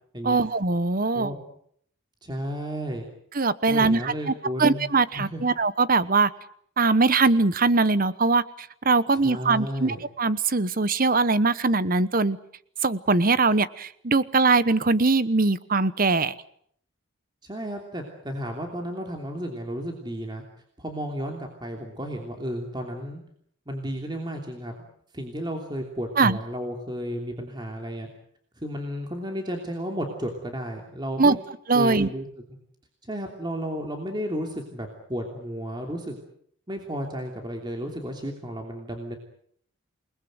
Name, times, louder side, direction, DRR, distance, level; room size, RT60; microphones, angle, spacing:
voice 1, 0.2-1.3 3.3-4.1 4.6-6.3 6.8-12.4 12.8-16.3 26.2-26.4 31.2-31.4 31.7-32.1, right 3 dB, 40° right, 16 dB, 1.0 m, -21 dB
voice 2, 2.2-3.0 3.7-5.4 9.1-10.0 17.4-20.4 20.8-23.2 23.7-24.9 25.1-28.1 28.6-31.4 31.7-32.3 33.0-36.2 36.7-39.1, equal, 20° right, 2 dB, 3.1 m, -33 dB
28.5 x 20.5 x 8.0 m, 0.66 s
head